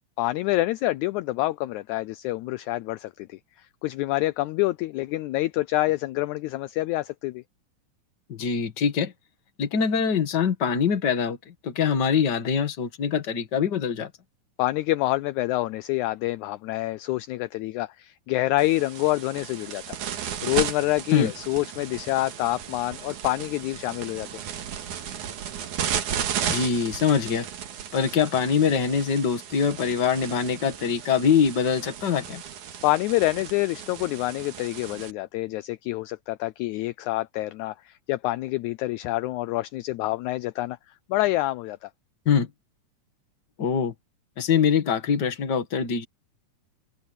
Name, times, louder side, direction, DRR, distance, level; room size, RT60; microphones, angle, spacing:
voice 1, 0.2-7.4 14.6-24.3 32.8-40.8 41.1-41.9, left 17 dB, 80° left, 1.8 m, -27 dB
voice 2, 8.3-9.1 9.6-14.1 21.1-21.3 26.5-27.5 27.9-32.4 42.3-42.5 43.6-43.9 44.4-46.0, left 7 dB, 40° left, 2.0 m, -23 dB
sound 1, 18.6-35.1, right 9 dB, 70° right, 3.1 m, -35 dB
open air
omnidirectional pair, 3.7 m